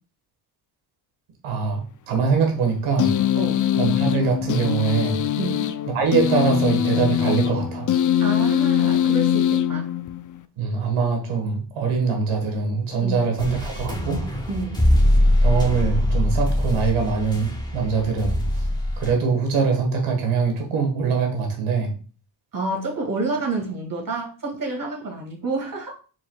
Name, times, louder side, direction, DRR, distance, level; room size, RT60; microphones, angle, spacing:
voice 1, 1.4-3.1 3.8-5.2 5.9-7.9 10.6-14.2 15.4-18.4 19.0-21.9, right 5 dB, 85° right, 2 dB, 1.5 m, -23 dB
sound 1, 3.0-10.4, left 10 dB, 40° left, 0.4 m, -22 dB
voice 2, 3.4-3.7 5.4-5.7 8.2-9.9 13.0-13.2 14.5-14.8 22.5-25.9, right 2 dB, 40° right, 1 dB, 2.0 m, -29 dB
sound 2, 13.4-19.1, left 1 dB, 10° left, 1.3 m, -22 dB
4.6 x 4.5 x 2.3 m, 0.38 s
cardioid pair, 70°, 49 cm